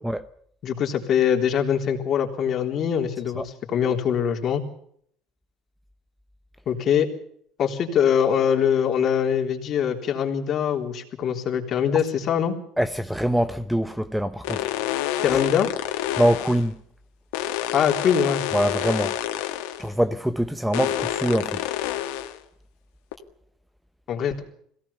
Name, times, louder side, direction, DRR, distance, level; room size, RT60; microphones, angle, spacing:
voice 1, 0.6-4.6 6.7-7.1 7.6-12.6 15.2-15.7 17.7-18.4 24.1-24.4, left 8 dB, 45° left, 3.6 m, -23 dB
voice 2, 12.8-14.7 15.3-15.4 16.2-16.8 18.5-19.2 19.8-21.6, equal, 5° right, 0.7 m, -24 dB
sound 1, 14.4-16.7 17.3-19.9 20.7-22.4 23.1-23.2, left 12 dB, 90° left, 2.2 m, -28 dB
22.5 x 17.5 x 7.0 m
cardioid pair, 125°, 0 cm